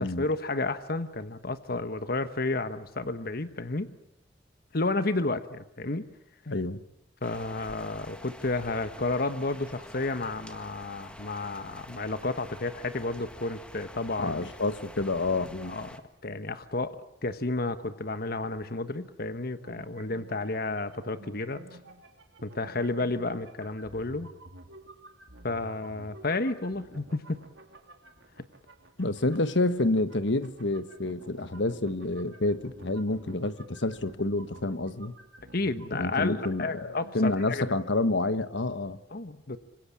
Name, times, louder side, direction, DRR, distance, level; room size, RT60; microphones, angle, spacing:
voice 1, 0.0-3.9 4.7-6.1 7.2-14.5 15.7-15.9 16.2-17.0 17.2-21.6 22.4-24.3 25.4-27.4 35.5-37.7 39.1-39.6, left 2 dB, 50° left, 11 dB, 1.3 m, -31 dB
voice 2, 6.5-6.8 14.2-15.8 29.0-35.1 35.9-39.0, left 2 dB, 70° left, 12 dB, 1.4 m, -28 dB
sound 1, 7.2-16.0, left 1 dB, 5° left, 1.7 m, -47 dB
sound 2, 19.6-37.5, right 1 dB, 75° right, 3.2 m, -51 dB
26.5 x 25.5 x 8.8 m, 0.78 s
head